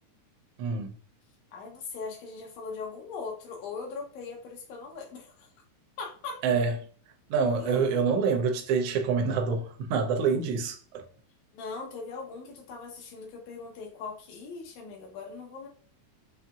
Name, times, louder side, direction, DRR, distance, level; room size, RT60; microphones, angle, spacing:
voice 1, 0.6-0.9 6.4-6.7 7.3-11.0, right 5 dB, 75° right, 1.4 m, -26 dB
voice 2, 1.5-5.5 6.0-6.4 7.6-8.0 11.5-15.7, left 4 dB, 80° left, 2.4 m, -40 dB
5.6 x 2.7 x 2.4 m
omnidirectional pair, 3.4 m